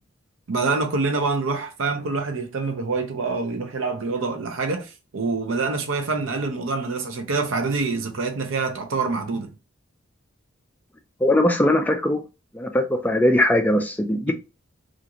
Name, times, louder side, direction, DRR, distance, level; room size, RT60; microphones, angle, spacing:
voice 1, 0.5-9.5 14.3-14.4, right 3 dB, 75° right, 0.6 m, -26 dB
voice 2, 11.2-12.2 12.5-14.3, left 1 dB, 10° left, 0.3 m, -20 dB
2.5 x 2.5 x 2.8 m
head